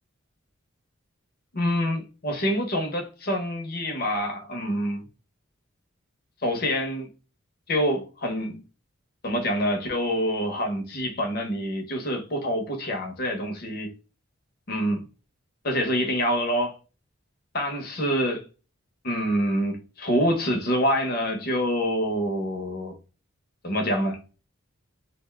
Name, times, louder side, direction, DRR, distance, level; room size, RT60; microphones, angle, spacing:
voice 1, 1.5-5.0 6.4-7.1 7.7-8.6 9.2-13.9 14.7-15.0 15.6-16.7 17.5-18.5 19.0-23.0 23.6-24.2, equal, 45° left, 0.7 m, -26 dB
2.5 x 2.1 x 3.3 m
head